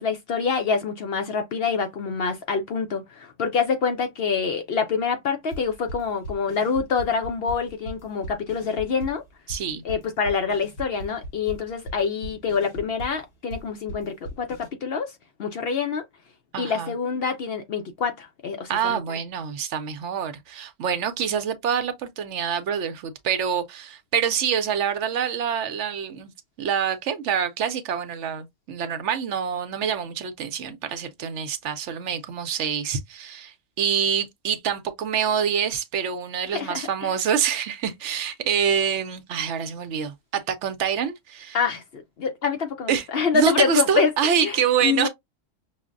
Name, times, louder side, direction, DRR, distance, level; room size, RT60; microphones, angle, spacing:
voice 1, 0.0-9.2 9.8-15.1 15.4-16.0 16.6-19.0 36.5-36.9 41.5-44.1 44.4-45.1, left 5 dB, 60° left, 0.7 m, -26 dB
sound 1, 5.5-14.7, equal, 80° left, 1.5 m, -38 dB
voice 2, 9.5-9.8 16.5-16.9 18.7-26.3 26.6-41.6 42.9-43.1 43.3-45.1, right 7 dB, 70° right, 0.8 m, -26 dB
5.6 x 2.1 x 2.4 m
omnidirectional pair, 1.3 m